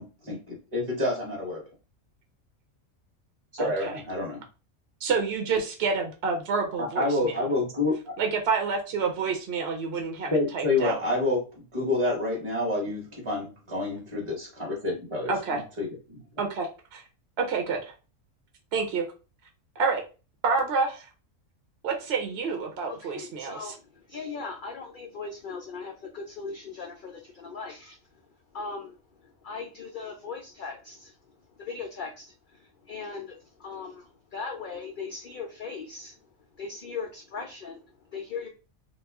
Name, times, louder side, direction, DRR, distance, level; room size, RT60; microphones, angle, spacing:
voice 1, 0.0-1.6 3.5-4.4 6.8-8.1 10.3-11.4 11.7-16.2, left 2 dB, 25° right, -3 dB, 0.7 m, -28 dB
voice 2, 3.6-3.9 5.0-7.4 8.2-11.0 15.3-15.6 16.4-17.0 17.4-17.9 18.7-19.0 19.8-20.0 20.4-21.1 21.8-23.7, right 4 dB, 60° right, 3 dB, 0.8 m, -28 dB
voice 3, 22.8-28.3 28.5-36.3 36.6-38.5, left 4 dB, 85° left, 2 dB, 0.4 m, -39 dB
2.9 x 2.4 x 3.4 m, 0.33 s
omnidirectional pair, 1.4 m